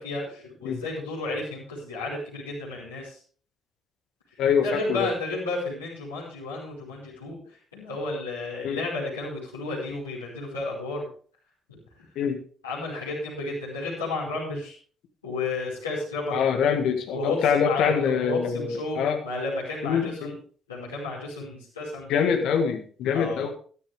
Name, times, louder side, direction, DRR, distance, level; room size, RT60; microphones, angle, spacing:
voice 1, 0.0-3.2 4.6-7.4 7.7-11.1 11.7-12.0 12.6-14.7 15.2-16.4 17.1-20.3 20.7-22.1 23.1-23.5, left 2 dB, 80° left, -7 dB, 5.1 m, -32 dB
voice 2, 4.4-5.1 8.6-8.8 12.2-12.4 16.3-19.2 19.8-20.4 22.1-23.5, left 7 dB, 60° left, 5 dB, 1.7 m, -24 dB
13.5 x 13.5 x 3.5 m, 0.43 s
figure-of-eight pair, 45°, 0 cm